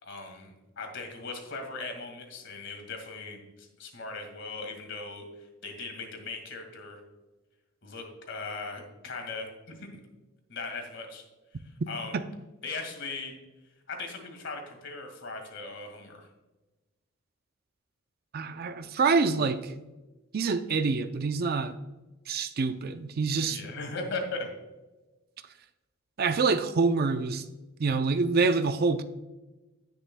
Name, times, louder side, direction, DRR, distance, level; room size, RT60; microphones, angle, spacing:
voice 1, 0.0-7.0 7.8-9.8 10.5-11.2 11.9-12.2 12.6-13.4 13.9-16.3 23.4-24.5, left 3 dB, 60° left, 4 dB, 2.0 m, -38 dB
voice 2, 18.3-19.7 20.3-21.8 22.3-23.6 26.2-27.4 27.8-29.0, right 4 dB, 50° right, 10 dB, 0.5 m, -26 dB
16.5 x 6.6 x 2.2 m, 1.1 s
head